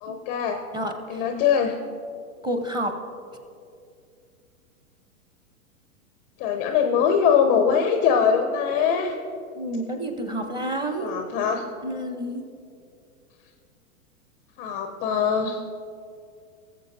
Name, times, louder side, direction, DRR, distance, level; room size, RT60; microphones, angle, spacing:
voice 1, 0.0-0.6 1.1-1.7 6.4-9.1 11.0-11.6 14.6-15.6, left 7 dB, 20° left, 5 dB, 0.4 m, -22 dB
voice 2, 0.7-1.3 2.4-3.0 9.5-11.2 11.8-12.5, right 1 dB, 10° right, 5 dB, 0.7 m, -29 dB
18.0 x 7.4 x 2.6 m, 2.4 s
hypercardioid pair, 110°, 43 cm